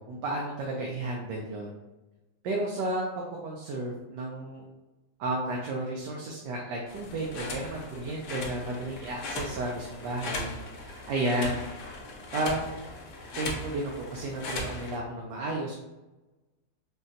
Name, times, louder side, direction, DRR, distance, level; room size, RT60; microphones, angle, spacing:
voice 1, 0.1-1.7 2.4-3.0 3.4-4.6 5.2-10.5 10.8-11.7 12.3-12.8 13.4-15.7, right 2 dB, 85° right, -2 dB, 1.2 m, -32 dB
sound 1, 6.9-15.0, left 2 dB, 65° left, 0.9 m, -38 dB
3.9 x 2.2 x 2.5 m, 1.1 s
omnidirectional pair, 1.8 m